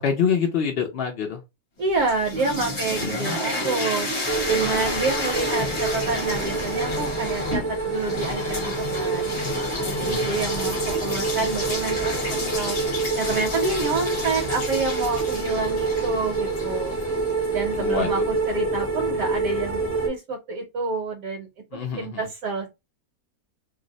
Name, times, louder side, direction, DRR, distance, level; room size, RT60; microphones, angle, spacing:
voice 1, 0.0-1.4 3.0-3.4 10.0-10.3 17.8-18.1 21.7-22.3, left 7 dB, 75° left, 0.5 m, -26 dB
voice 2, 1.8-4.1 4.5-16.9 17.5-22.7, right 4 dB, 65° right, 1.1 m, -28 dB
sound 1, 1.9-17.9, left 2 dB, 35° left, 1.0 m, -31 dB
sound 2, 4.3-20.1, right 3 dB, 20° left, 0.4 m, -27 dB
2.7 x 2.0 x 3.8 m
omnidirectional pair, 1.6 m